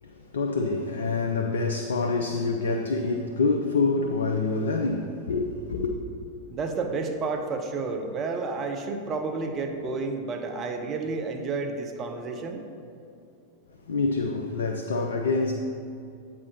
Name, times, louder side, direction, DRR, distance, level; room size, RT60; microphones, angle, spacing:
voice 1, 0.0-5.9 13.9-15.5, left 3 dB, 65° left, 0.4 m, -26 dB
voice 2, 6.5-12.6, right 3 dB, 30° right, 0.6 m, -31 dB
8.5 x 4.4 x 4.3 m
figure-of-eight pair, 90°, 0 cm